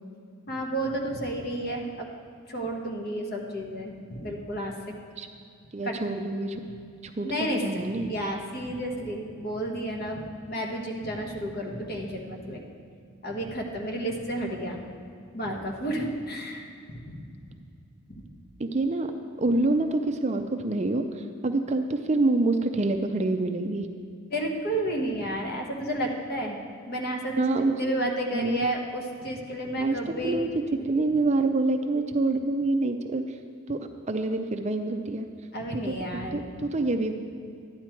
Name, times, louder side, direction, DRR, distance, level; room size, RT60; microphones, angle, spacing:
voice 1, 0.5-2.1 2.5-5.0 5.8-6.0 7.2-7.6 8.0-12.6 13.2-14.8 15.3-17.6 18.1-18.2 24.3-26.6 26.9-30.4 35.5-36.7, right 1 dB, 45° left, 1 dB, 1.3 m, -32 dB
voice 2, 5.7-6.6 7.0-8.1 18.6-19.1 19.4-23.9 27.4-27.7 28.3-28.6 29.8-33.4 33.7-35.3 35.7-37.1, right 2 dB, 30° right, 6 dB, 0.5 m, -27 dB
12.0 x 9.8 x 4.5 m, 2.3 s
head